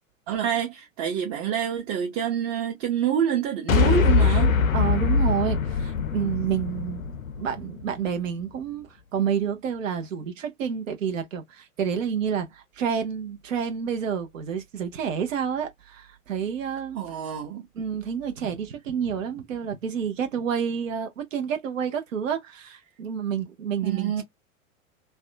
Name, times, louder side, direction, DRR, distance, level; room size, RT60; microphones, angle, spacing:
voice 1, 0.3-4.6 16.9-17.7 23.8-24.2, right 9 dB, 35° right, 0.8 m, -27 dB
sound 1, 3.7-8.1, left 5 dB, 75° left, 0.6 m, -23 dB
voice 2, 4.7-7.1 7.4-17.0 17.7-24.2, right 7 dB, 65° right, 0.7 m, -29 dB
2.6 x 2.1 x 2.4 m
figure-of-eight pair, 90°, 41 cm